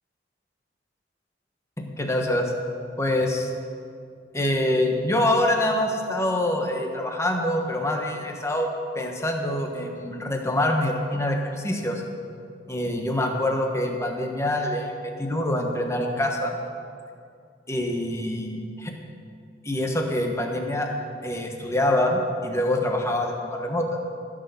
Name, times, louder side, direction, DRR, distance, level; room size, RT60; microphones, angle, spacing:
voice 1, 1.8-2.5 3.0-3.5 4.3-12.0 12.7-16.5 17.7-18.9 19.6-20.9 21.2-23.9, left 1 dB, 15° left, 2 dB, 1.2 m, -25 dB
15.0 x 6.5 x 6.9 m, 2.4 s
head